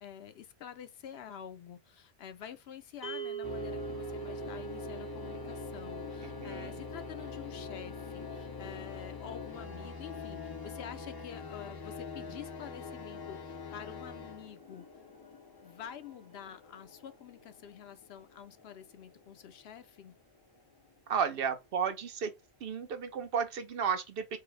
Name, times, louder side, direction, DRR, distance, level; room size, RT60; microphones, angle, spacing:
voice 1, 0.0-14.8 15.6-20.1, left 9 dB, 70° left, 0.8 m, -48 dB
sound 1, 3.0-13.3, right 8 dB, 30° right, 0.8 m, -46 dB
sound 2, 3.4-21.7, left 5 dB, 30° left, 0.4 m, -44 dB
voice 2, 6.2-6.7 21.1-22.3 22.6-24.4, right 7 dB, 65° right, 0.8 m, -33 dB
4.7 x 2.0 x 3.2 m
omnidirectional pair, 1.1 m